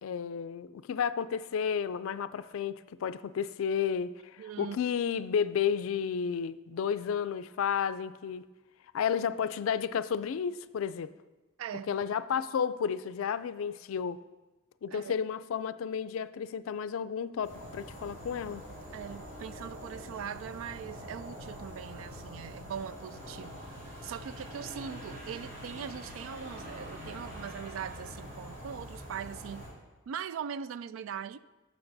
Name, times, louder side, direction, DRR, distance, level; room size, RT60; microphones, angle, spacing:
voice 1, 0.0-4.1 4.6-8.4 8.9-11.1 11.9-14.2 14.8-18.6, left 7 dB, 85° left, 0.4 m, -32 dB
voice 2, 4.4-4.8 11.6-11.9 14.9-15.1 18.9-23.6 24.0-29.7 30.1-31.4, right 8 dB, 80° right, 0.3 m, -41 dB
sound 1, 17.4-29.7, equal, 40° right, 3.4 m, -45 dB
15.5 x 7.1 x 2.6 m
head